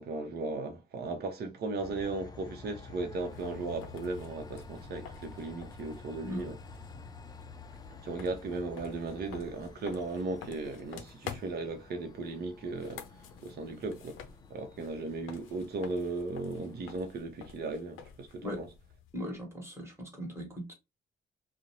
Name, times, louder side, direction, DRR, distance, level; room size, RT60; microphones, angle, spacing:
voice 1, 0.0-6.6 7.9-13.1 13.4-14.2 14.5-18.7, right 3 dB, 55° right, 0.7 m, -36 dB
Train, 1.8-16.9, left 4 dB, 20° left, 0.4 m, -50 dB
sound 1, 3.1-19.2, left 7 dB, 90° left, 0.6 m, -50 dB
voice 2, 19.1-20.7, equal, 15° right, 1.2 m, -39 dB
2.5 x 2.0 x 2.9 m
cardioid pair, 90°, 20 cm